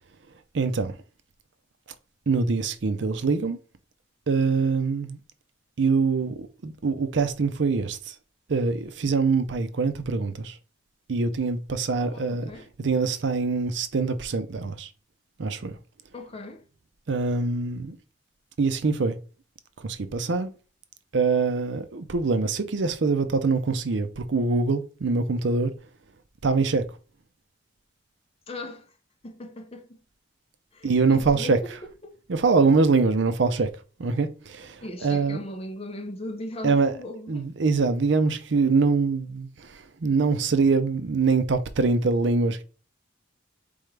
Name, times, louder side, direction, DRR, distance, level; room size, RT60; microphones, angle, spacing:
voice 1, 0.5-1.0 2.3-3.6 4.3-5.2 5.8-8.1 8.5-10.6 11.1-12.5 12.8-14.9 15.4-15.8 17.1-18.0 18.6-19.2 19.8-20.5 21.1-25.7 26.4-26.8 30.8-31.6 32.3-33.7 34.0-35.4 36.6-36.9 37.3-42.6, right 4 dB, 70° right, 0.5 m, -24 dB
voice 2, 12.0-12.7 16.1-16.6 28.5-29.0 29.2-30.0 30.7-32.2 34.8-37.5, left 1 dB, 30° left, 0.7 m, -38 dB
4.2 x 3.5 x 3.3 m
head